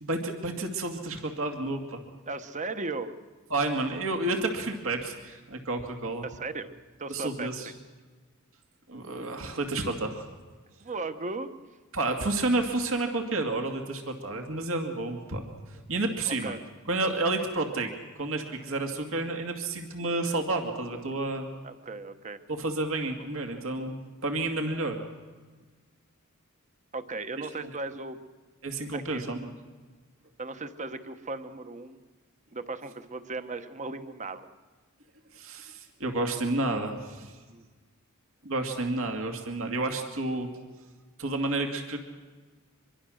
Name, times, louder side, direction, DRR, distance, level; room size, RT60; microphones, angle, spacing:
voice 1, 0.0-2.0 3.5-6.2 7.1-7.7 8.9-10.2 11.9-15.5 15.9-16.5 16.9-17.9 18.1-21.5 22.5-25.0 27.4-27.7 28.6-29.5 35.3-37.3 38.4-40.5 41.2-42.0, right 2 dB, 65° right, 4 dB, 2.3 m, -30 dB
voice 2, 2.3-3.1 6.2-6.7 7.0-7.5 10.8-11.5 16.3-16.6 21.6-22.4 26.9-28.2 28.9-29.2 30.4-32.0 32.5-34.5 37.5-37.7, right 3 dB, 35° right, 10 dB, 1.1 m, -36 dB
24.5 x 22.5 x 6.4 m, 1.4 s
head